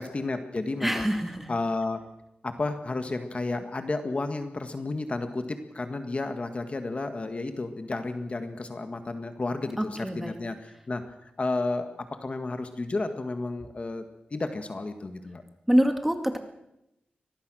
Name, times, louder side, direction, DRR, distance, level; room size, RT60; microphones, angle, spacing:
voice 1, 0.0-1.1 1.5-2.0 2.4-11.9 12.2-14.0 14.3-15.4, left 3 dB, 40° left, 7 dB, 1.8 m, -32 dB
voice 2, 0.8-1.5 9.8-10.3 15.7-16.4, equal, 5° right, 6 dB, 2.2 m, -25 dB
24.0 x 19.0 x 6.4 m, 0.87 s
wide cardioid pair, 110°, 3 cm